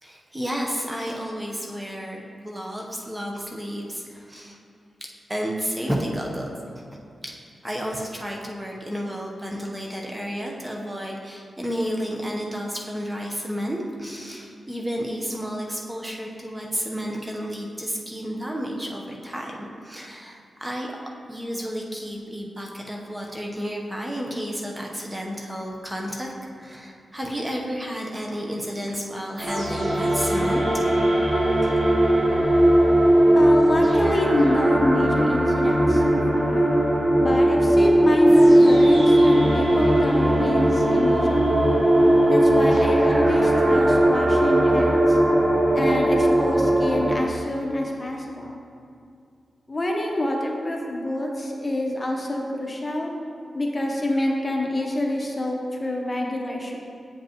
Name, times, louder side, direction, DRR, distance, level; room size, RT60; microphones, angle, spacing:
voice 1, 0.0-4.6 5.0-6.8 7.2-7.4 7.6-20.9 21.3-26.3 26.6-31.0 31.6-31.7, equal, 15° right, -1 dB, 0.9 m, -31 dB
sound 1, 29.4-47.2, right 1 dB, 90° right, 1.5 m, -18 dB
voice 2, 33.4-36.7 37.2-41.6 42.3-45.2 45.7-48.6 49.7-53.1 53.5-56.8, left 1 dB, 35° left, 0 dB, 0.9 m, -26 dB
8.3 x 5.2 x 3.0 m, 2.4 s
cardioid pair, 60°, 0 cm